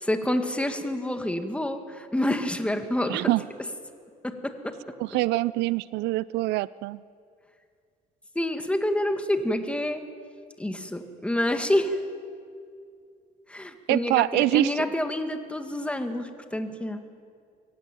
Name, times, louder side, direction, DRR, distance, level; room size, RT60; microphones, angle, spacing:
voice 1, 0.0-3.3 4.2-4.8 8.4-10.0 10.6-12.0 13.5-17.0, left 1 dB, 5° left, 6 dB, 1.9 m, -28 dB
voice 2, 3.1-3.4 5.0-7.0 13.9-14.8, right 18 dB, 85° right, 20 dB, 0.4 m, -25 dB
23.5 x 16.0 x 9.0 m, 2.3 s
cardioid pair, 110°, 17 cm